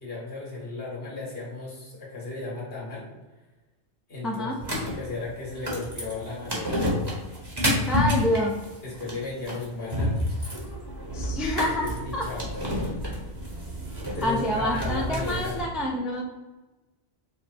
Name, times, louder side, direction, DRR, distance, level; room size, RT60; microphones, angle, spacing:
voice 1, 0.0-3.1 4.1-6.9 8.0-8.4 8.8-10.2 11.8-12.5 14.0-15.6, left 3 dB, 65° left, -4 dB, 1.8 m, -35 dB
voice 2, 4.2-4.6 7.9-8.5 11.1-12.3 14.2-16.2, left 1 dB, ahead, -1 dB, 0.4 m, -27 dB
sound 1, 4.6-15.6, left 1 dB, 25° right, 1.0 m, -30 dB
5.1 x 2.1 x 4.3 m, 1.1 s
omnidirectional pair, 1.1 m